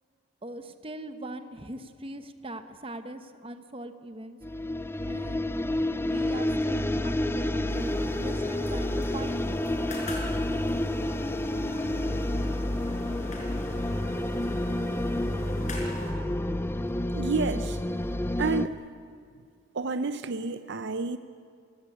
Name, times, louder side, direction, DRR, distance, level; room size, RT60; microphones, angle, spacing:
voice 1, 0.4-4.4 5.1-5.6 6.0-9.6, right 1 dB, 30° right, 9 dB, 1.2 m, -41 dB
sound 1, 4.4-18.7, left 1 dB, 10° left, 0.6 m, -29 dB
sound 2, 7.7-16.1, left 1 dB, 40° left, 5.6 m, -41 dB
voice 2, 17.1-17.8 18.4-18.8 19.7-21.2, right 4 dB, 60° right, 11 dB, 0.6 m, -30 dB
27.5 x 17.0 x 8.6 m, 2.3 s
head